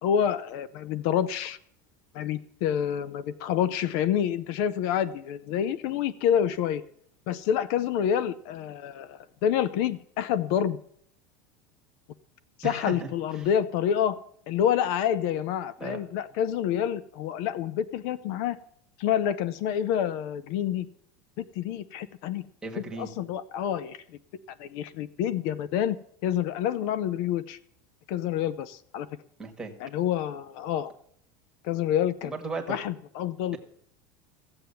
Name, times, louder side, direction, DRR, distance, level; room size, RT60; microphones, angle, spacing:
voice 1, 0.0-1.6 2.1-6.8 7.3-10.8 12.6-14.2 14.5-18.6 19.0-20.9 21.4-22.5 23.0-24.0 24.6-26.0 26.2-27.6 28.1-29.1 29.8-30.9 31.6-32.3 32.7-33.6, left 9 dB, 55° left, 16 dB, 0.6 m, -28 dB
voice 2, 12.6-13.5 15.8-16.0 22.6-23.1 29.4-29.7 32.2-32.8, right 4 dB, 10° right, 1 dB, 1.6 m, -36 dB
15.5 x 7.7 x 7.0 m, 0.67 s
cardioid pair, 165°, 8 cm